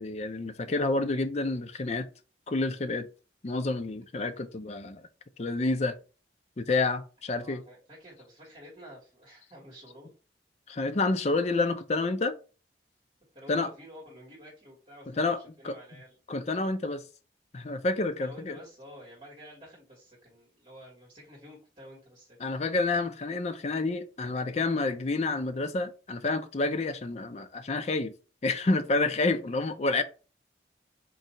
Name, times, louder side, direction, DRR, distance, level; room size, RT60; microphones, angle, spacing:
voice 1, 0.0-2.1 2.5-3.1 3.4-5.0 5.4-5.9 6.6-7.6 10.7-12.4 13.5-13.7 15.2-15.4 15.6-15.8 16.3-17.0 17.5-18.6 22.4-28.1 28.4-30.0, left 3 dB, 40° left, 0.5 m, -29 dB
voice 2, 7.3-10.1 13.3-16.2 18.2-22.4, equal, 30° right, 1.5 m, -50 dB
3.9 x 2.7 x 4.3 m
head